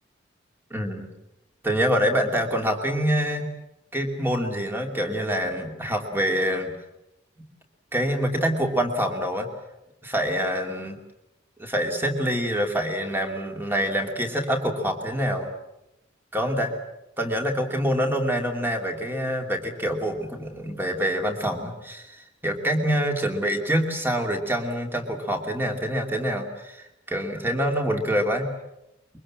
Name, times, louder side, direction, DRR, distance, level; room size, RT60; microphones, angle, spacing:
voice 1, 0.7-1.1 1.6-3.5 3.9-6.7 7.9-9.5 10.0-11.0 11.6-15.5 16.3-16.7 17.2-28.4, equal, 10° right, 3 dB, 2.7 m, -26 dB
24.0 x 23.0 x 7.5 m, 0.90 s
head